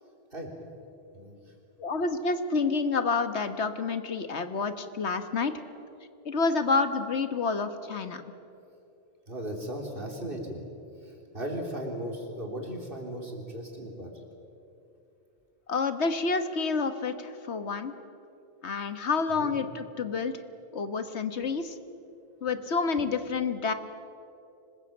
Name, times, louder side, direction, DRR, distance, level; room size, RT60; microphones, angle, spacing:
voice 1, 1.8-5.5 6.2-8.2 15.7-17.9 18.6-20.3 20.7-21.8 22.4-23.7, left 4 dB, 85° left, 10 dB, 1.6 m, -28 dB
voice 2, 9.3-10.6 11.0-14.1 19.4-19.6, right 1 dB, 55° right, 1 dB, 4.0 m, -36 dB
25.5 x 20.5 x 8.8 m, 2.8 s
omnidirectional pair, 1.1 m